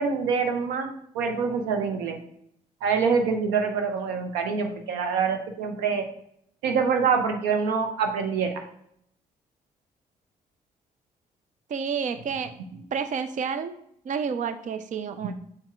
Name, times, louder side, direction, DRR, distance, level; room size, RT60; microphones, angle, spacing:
voice 1, 0.0-2.2 2.8-6.0 6.6-8.6 15.2-15.3, right 5 dB, 85° right, 5 dB, 0.9 m, -25 dB
voice 2, 11.7-12.5 12.9-13.7 14.1-15.3, right 6 dB, 50° right, 10 dB, 0.5 m, -29 dB
7.9 x 4.2 x 3.6 m, 0.71 s
hypercardioid pair, 50°, 16 cm